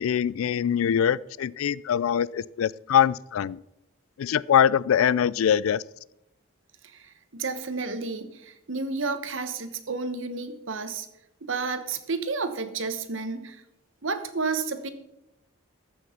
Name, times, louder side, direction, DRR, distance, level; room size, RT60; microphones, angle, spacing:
voice 1, 0.0-3.6 4.2-5.8, left 8 dB, 80° left, 21 dB, 0.3 m, -23 dB
voice 2, 6.8-11.1 11.4-13.6 14.0-14.9, right 4 dB, 65° right, 10 dB, 1.1 m, -31 dB
14.0 x 6.2 x 5.8 m, 0.86 s
head